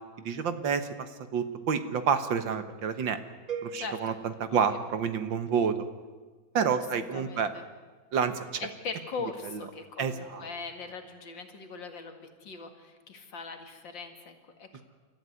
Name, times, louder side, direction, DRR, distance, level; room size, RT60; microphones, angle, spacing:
voice 1, 0.3-1.1 1.3-3.2 3.6-5.8 6.5-7.5 8.1-8.6 10.0-10.4, right 6 dB, 80° right, 9 dB, 2.1 m, -28 dB
sound 1, 3.5-5.6, right 6 dB, 20° right, 2.0 m, -42 dB
voice 2, 3.7-4.2 4.5-4.8 6.7-7.7 8.6-14.8, left 4 dB, 80° left, 5 dB, 2.8 m, -41 dB
29.0 x 14.0 x 9.6 m, 1.4 s
omnidirectional pair, 2.0 m